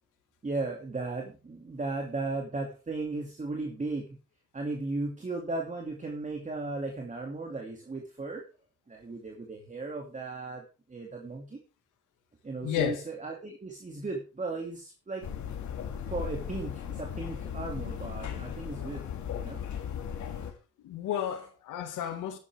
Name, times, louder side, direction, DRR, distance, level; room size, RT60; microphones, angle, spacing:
voice 1, 0.4-4.2 4.5-8.4 8.9-11.6 12.4-15.2 16.1-19.0 19.4-19.9 20.3-20.4 21.1-21.2, right 3 dB, 25° right, 2.6 m, -36 dB
voice 2, 12.6-13.0 20.8-22.4, left 10 dB, 90° left, 2.0 m, -32 dB
sound 1, 15.2-20.5, left 8 dB, 70° left, 2.3 m, -37 dB
12.5 x 9.9 x 3.6 m
cardioid pair, 90°, 30 cm